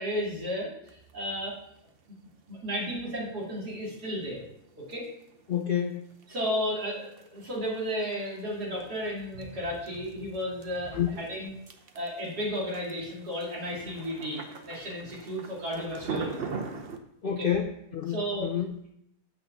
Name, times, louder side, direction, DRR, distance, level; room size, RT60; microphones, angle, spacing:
voice 1, 0.0-1.6 2.5-4.4 4.8-5.1 6.3-11.5 12.0-16.5 17.4-17.5 18.1-18.5, equal, 85° right, -4 dB, 3.4 m, -33 dB
sound 1, 0.9-17.0, right 5 dB, 45° right, 0.9 m, -44 dB
voice 2, 5.5-6.1 11.0-11.1 17.2-18.8, left 9 dB, 90° left, 6 dB, 0.4 m, -29 dB
7.7 x 6.0 x 7.1 m, 0.80 s
omnidirectional pair, 1.7 m